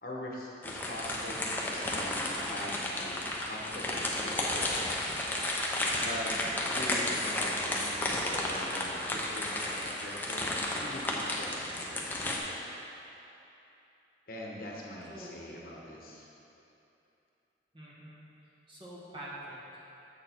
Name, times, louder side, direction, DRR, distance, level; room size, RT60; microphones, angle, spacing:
voice 1, 0.0-5.0 6.0-6.3 6.7-12.4 14.3-16.2, left 1 dB, 50° left, -3 dB, 1.0 m, -43 dB
sound 1, 0.6-12.4, left 1 dB, 10° left, 0.6 m, -33 dB
voice 2, 15.1-15.4 17.7-18.3 18.7-19.9, right 1 dB, 25° right, -7 dB, 1.4 m, -46 dB
7.5 x 6.4 x 4.3 m, 2.9 s
head